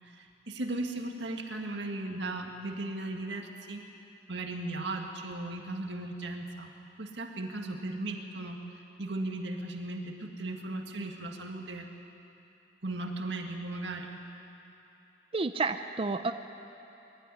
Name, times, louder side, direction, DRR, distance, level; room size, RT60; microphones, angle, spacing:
voice 1, 0.0-3.8 4.3-6.7 7.0-8.6 9.0-11.9 12.8-14.1, right 2 dB, 75° right, 3 dB, 1.8 m, -37 dB
voice 2, 15.3-16.3, right 3 dB, 30° right, 8 dB, 0.5 m, -30 dB
21.5 x 12.5 x 9.9 m, 2.9 s
head